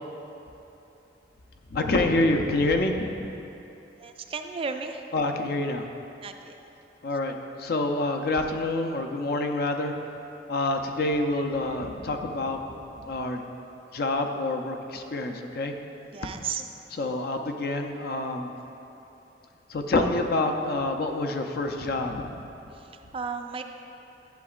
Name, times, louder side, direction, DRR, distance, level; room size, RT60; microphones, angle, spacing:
voice 1, 1.7-3.1 5.1-5.9 7.0-7.3 7.6-9.9 10.5-12.6 13.0-13.4 13.9-15.7 17.0-18.5 19.7-22.5, left 2 dB, 60° left, 4 dB, 0.5 m, -27 dB
voice 2, 4.0-5.0 6.2-6.6 16.1-16.6 22.7-23.6, right 5 dB, 30° right, 6 dB, 0.3 m, -34 dB
11.5 x 7.2 x 2.4 m, 3.0 s
head